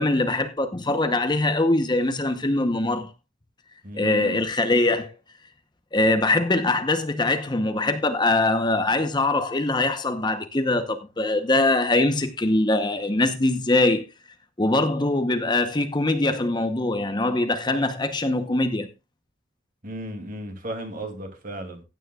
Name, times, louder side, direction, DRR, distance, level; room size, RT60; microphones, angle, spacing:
voice 1, 0.0-3.1 3.9-5.1 5.9-14.0 14.6-18.9, left 2 dB, 25° left, 0.8 m, -22 dB
voice 2, 3.8-4.4 19.8-21.8, right 1 dB, 45° right, 2.6 m, -35 dB
16.0 x 9.3 x 2.4 m
head